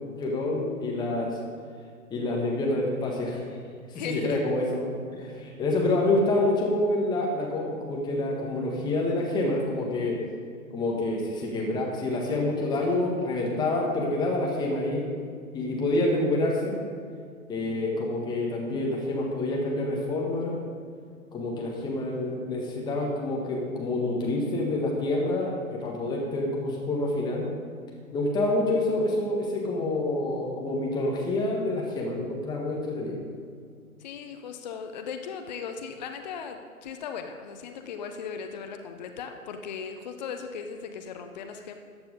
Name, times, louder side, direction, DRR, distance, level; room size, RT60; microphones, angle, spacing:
voice 1, 0.1-1.4 2.1-3.6 3.9-10.2 10.7-15.1 15.5-16.8 17.5-20.5 21.3-27.5 28.1-33.2, left 2 dB, 10° left, -1 dB, 1.6 m, -27 dB
voice 2, 3.9-4.4 34.0-41.7, left 6 dB, 30° left, 6 dB, 0.7 m, -37 dB
14.0 x 9.0 x 5.2 m, 2.2 s
figure-of-eight pair, 135°, 44 cm